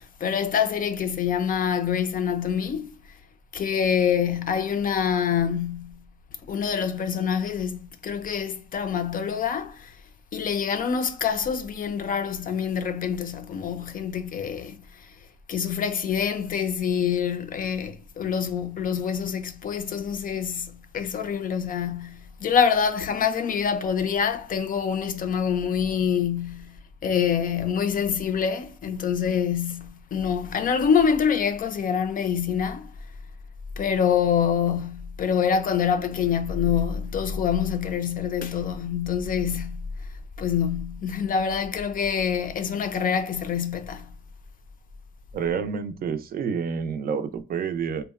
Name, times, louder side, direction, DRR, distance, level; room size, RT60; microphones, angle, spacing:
voice 1, 0.0-2.9 3.5-6.0 6.5-9.9 10.3-15.1 15.5-32.9 33.8-39.9 40.4-44.1, left 7 dB, 45° left, 0.4 m, -26 dB
voice 2, 45.3-48.0, right 6 dB, 50° right, 0.4 m, -28 dB
2.7 x 2.1 x 2.3 m
cardioid pair, 90°, 20 cm